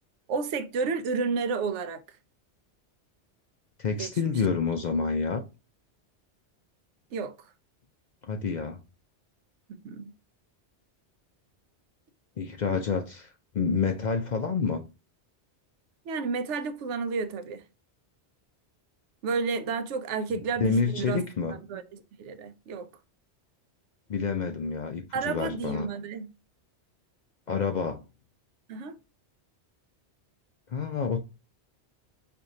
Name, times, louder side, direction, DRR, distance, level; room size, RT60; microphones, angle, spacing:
voice 1, 0.3-2.0 4.0-4.3 7.1-7.3 9.7-10.1 16.1-17.6 19.2-21.8 22.2-22.9 25.1-26.3 28.7-28.9, right 4 dB, 85° right, 0.9 m, -31 dB
voice 2, 3.8-5.4 8.2-8.8 12.4-14.8 20.3-21.5 24.1-25.9 27.5-28.0 30.7-31.2, left 5 dB, 60° left, 0.5 m, -28 dB
4.6 x 2.5 x 2.6 m
omnidirectional pair, 1.2 m